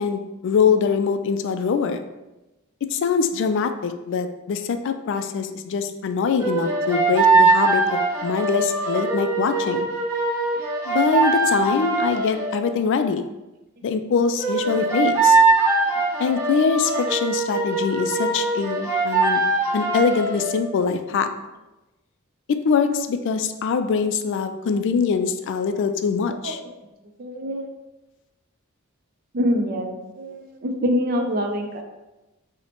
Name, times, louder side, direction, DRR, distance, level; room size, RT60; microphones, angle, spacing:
voice 1, 0.0-2.0 2.9-9.9 10.9-13.3 13.8-15.4 16.2-19.4 19.7-21.3 22.5-26.6, left 5 dB, 60° left, 8 dB, 0.3 m, -23 dB
sound 1, 6.4-12.6 14.4-20.6, right 3 dB, 15° right, 0.8 m, -21 dB
voice 2, 27.2-27.7 29.3-31.8, equal, 45° right, 3 dB, 0.5 m, -25 dB
5.5 x 2.1 x 2.9 m, 1.0 s
head